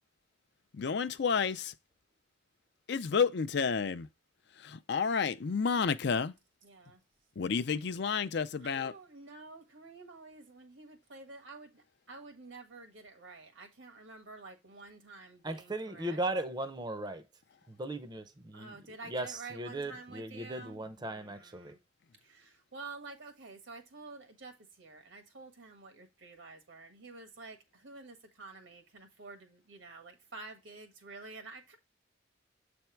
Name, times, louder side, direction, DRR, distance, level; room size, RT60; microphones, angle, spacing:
voice 1, 0.7-1.7 2.9-4.1 4.6-6.3 7.4-8.9, left 5 dB, 60° left, 0.5 m, -30 dB
voice 2, 6.6-7.0 8.6-16.2 18.5-21.8 22.2-31.8, right 3 dB, 80° right, 1.6 m, -50 dB
voice 3, 15.4-17.2 17.7-18.8 19.1-21.7, right 1 dB, 20° right, 0.6 m, -37 dB
7.8 x 3.5 x 4.4 m
head